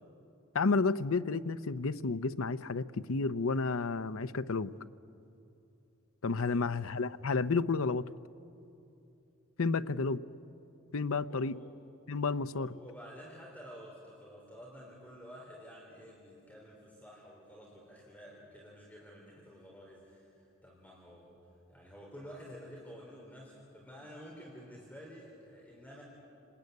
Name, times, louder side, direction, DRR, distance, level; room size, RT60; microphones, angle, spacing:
voice 1, 0.5-4.7 6.2-8.1 9.6-10.2 10.9-11.6 12.1-12.8, left 4 dB, 85° left, 13 dB, 0.7 m, -31 dB
voice 2, 6.4-6.7 11.3-11.7 12.5-21.4 21.7-26.0, equal, 10° left, -3 dB, 3.7 m, -51 dB
28.5 x 20.5 x 9.5 m, 2.7 s
head